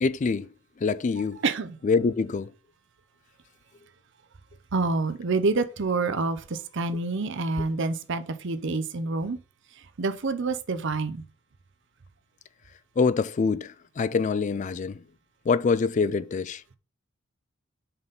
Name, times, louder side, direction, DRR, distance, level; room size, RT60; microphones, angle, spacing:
voice 1, 0.0-1.4 1.8-2.5 13.0-15.0 15.5-16.6, left 4 dB, 35° left, 0.3 m, -25 dB
voice 2, 1.4-1.8 4.7-9.4 10.0-11.2, right 3 dB, 60° right, 0.6 m, -27 dB
5.5 x 4.1 x 5.3 m
head